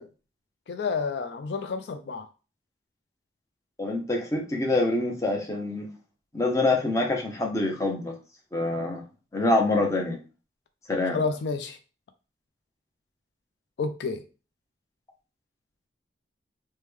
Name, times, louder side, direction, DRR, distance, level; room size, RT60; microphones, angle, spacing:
voice 1, 0.7-2.3 11.1-11.8 13.8-14.2, left 4 dB, 70° left, 8 dB, 0.4 m, -30 dB
voice 2, 3.8-5.9 6.3-8.1 8.5-9.0 9.3-10.2 10.9-11.2, left 2 dB, 15° left, 0 dB, 0.6 m, -25 dB
3.1 x 2.1 x 3.4 m, 0.33 s
head